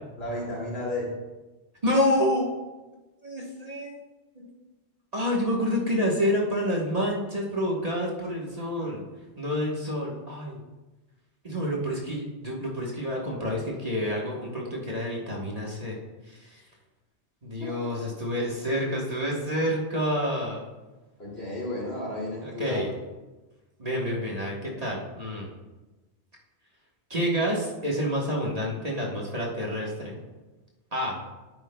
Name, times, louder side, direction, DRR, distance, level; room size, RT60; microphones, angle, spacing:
voice 1, 0.2-1.1 17.6-18.0 21.2-22.8, left 1 dB, 65° left, -4 dB, 2.7 m, -33 dB
voice 2, 1.8-2.5 3.2-3.9 4.3-4.5 5.1-9.0 9.4-10.6 11.4-16.0 16.3-16.6 17.4-20.6 22.4-22.9 23.8-25.5 27.1-30.2 30.9-31.2, equal, 35° right, -3 dB, 1.3 m, -28 dB
10.5 x 9.0 x 2.2 m, 1.2 s
omnidirectional pair, 1.1 m